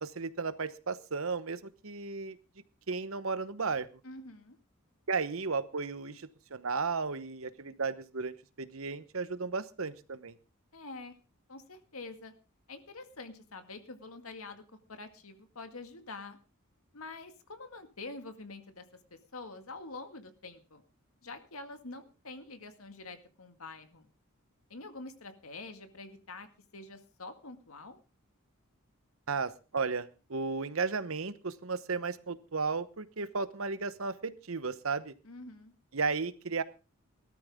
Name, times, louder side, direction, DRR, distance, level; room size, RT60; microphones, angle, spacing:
voice 1, 0.0-2.4 2.9-3.9 5.1-10.3 29.3-35.1 35.9-36.6, right 4 dB, 70° right, 14 dB, 1.0 m, -34 dB
voice 2, 4.0-4.6 10.7-11.1 11.5-12.3 12.7-14.6 14.9-16.4 16.9-18.9 19.1-20.8 21.2-24.1 24.7-26.5 26.7-28.0 35.2-35.7, left 3 dB, 80° left, 7 dB, 2.0 m, -46 dB
18.5 x 13.0 x 3.6 m, 0.32 s
head